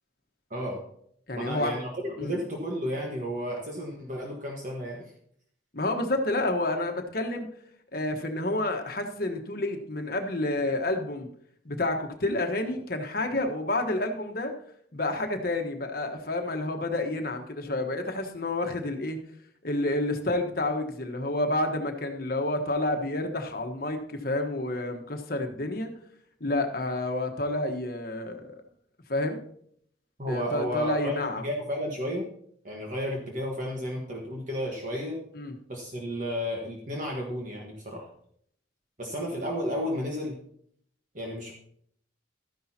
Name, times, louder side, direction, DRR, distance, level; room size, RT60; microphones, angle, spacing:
voice 1, 0.5-0.8 1.3-5.1 30.2-32.3 32.6-35.2 35.7-38.1 39.0-40.4 41.1-41.5, equal, 40° right, -1 dB, 1.4 m, -32 dB
voice 2, 1.3-1.7 2.2-2.3 5.7-7.5 7.9-11.3 11.6-14.5 14.9-19.2 19.6-25.9 26.4-28.6 29.1-29.4 30.3-31.4 35.3-35.5, left 2 dB, 50° left, 4 dB, 1.2 m, -29 dB
13.0 x 10.0 x 2.9 m, 0.66 s
head